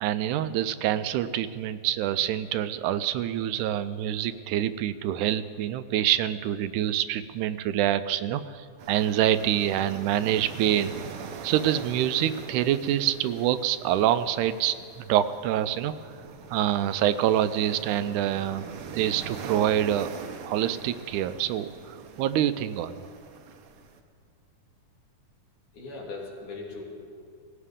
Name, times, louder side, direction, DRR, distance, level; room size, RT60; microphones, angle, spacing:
voice 1, 0.0-10.9 11.4-15.9 16.5-18.7 18.9-20.1 20.4-23.0, right 11 dB, 85° right, 13 dB, 2.0 m, -26 dB
sound 1, 8.8-24.0, right 6 dB, 70° right, 1.3 m, -42 dB
voice 2, 25.7-26.8, left 3 dB, 75° left, -3 dB, 3.9 m, -38 dB
18.0 x 16.5 x 3.7 m, 2.3 s
omnidirectional pair, 3.5 m